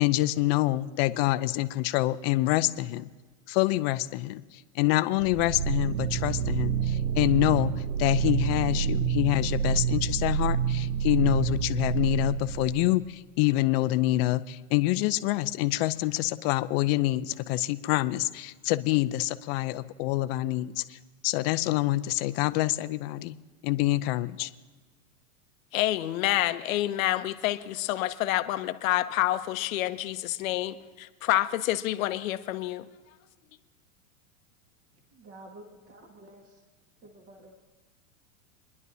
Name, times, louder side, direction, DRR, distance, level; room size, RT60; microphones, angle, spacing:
voice 1, 0.0-3.1 3.5-7.7 8.0-21.0 21.2-23.3 23.6-24.5, left 17 dB, 45° left, 13 dB, 0.6 m, -26 dB
sound 1, 5.2-13.0, right 7 dB, 80° right, 0.8 m, -28 dB
voice 2, 25.7-32.8, left 15 dB, 65° left, 11 dB, 0.9 m, -28 dB
voice 3, 35.1-36.6 37.0-37.5, right 1 dB, 30° right, 2 dB, 1.9 m, -50 dB
25.0 x 11.0 x 2.8 m, 1.3 s
hypercardioid pair, 125°, 43 cm